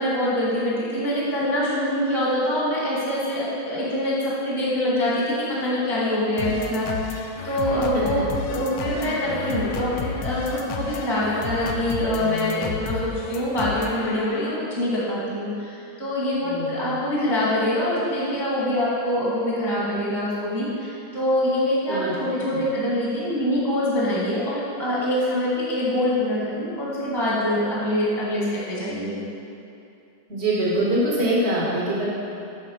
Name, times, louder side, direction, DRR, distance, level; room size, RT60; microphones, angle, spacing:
voice 1, 0.0-29.2, left 1 dB, 20° right, -8 dB, 0.6 m, -24 dB
sound 1, 6.4-14.6, left 5 dB, 80° left, 1.8 m, -32 dB
voice 2, 8.9-9.4 16.4-16.9 21.9-22.1 22.5-22.6 30.3-32.1, right 1 dB, 60° right, -6 dB, 0.6 m, -24 dB
8.5 x 4.4 x 6.5 m, 2.7 s
omnidirectional pair, 3.5 m